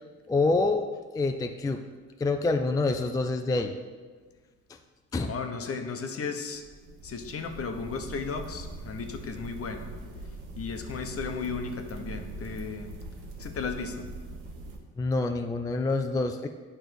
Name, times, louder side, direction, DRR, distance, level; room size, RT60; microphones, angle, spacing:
voice 1, 0.3-0.9 1.1-1.8 2.2-3.8 4.7-4.8 5.1-5.3 15.0-16.5, left 3 dB, 10° left, 6 dB, 0.4 m, -26 dB
voice 2, 5.3-6.6 7.0-9.9 10.6-12.9 13.4-14.0, left 5 dB, 50° left, 6 dB, 0.9 m, -35 dB
sound 1, 6.5-14.8, right 1 dB, 90° right, 1.2 m, -42 dB
9.2 x 3.3 x 6.2 m, 1.5 s
cardioid pair, 90°, 30 cm